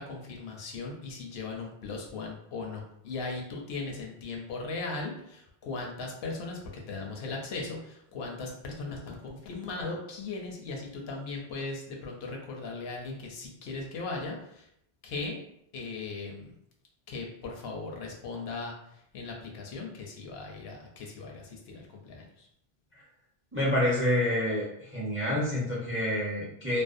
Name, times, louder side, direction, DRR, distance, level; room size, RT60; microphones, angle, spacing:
voice 1, 0.0-14.7 15.0-15.4 15.7-16.5 17.1-22.5, left 3 dB, 75° left, 0 dB, 0.8 m, -38 dB
voice 2, 23.5-24.6 24.9-26.8, left 1 dB, 15° right, -6 dB, 0.4 m, -27 dB
2.5 x 2.1 x 2.4 m, 0.75 s
omnidirectional pair, 1.1 m